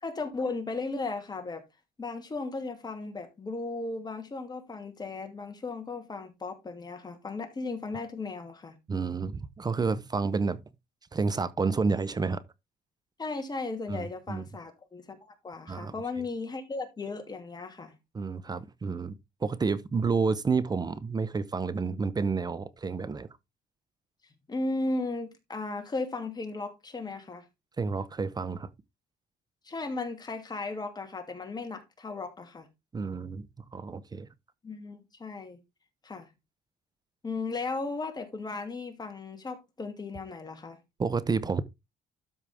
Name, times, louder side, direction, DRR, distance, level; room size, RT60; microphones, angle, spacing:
voice 1, 0.0-1.6 2.0-8.8 13.2-15.2 15.4-17.9 24.5-27.4 29.6-32.7 34.6-35.6 36.0-36.3 37.2-40.8, left 3 dB, 25° left, 2.6 m, -36 dB
voice 2, 8.9-10.6 11.1-12.4 13.9-14.4 15.7-15.9 18.1-19.1 19.4-23.3 27.8-28.7 32.9-34.3 41.0-41.6, right 4 dB, 25° right, 0.7 m, -30 dB
12.5 x 5.2 x 3.5 m
cardioid pair, 110°, 17 cm